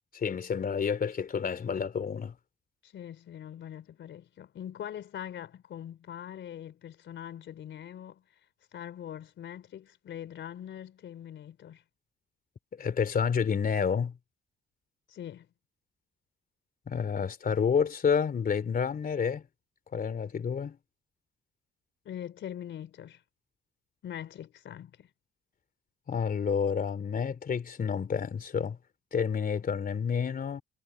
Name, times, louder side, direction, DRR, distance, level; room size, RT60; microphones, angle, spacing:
voice 1, 0.1-2.4 12.7-14.2 16.9-19.4 19.9-20.8 26.1-28.8 29.1-30.6, left 6 dB, 45° left, 3.2 m, -29 dB
voice 2, 2.8-8.2 8.7-11.8 15.1-15.5 22.1-23.2 24.0-25.1, left 10 dB, 70° left, 3.7 m, -42 dB
cardioid pair, 90°, 20 cm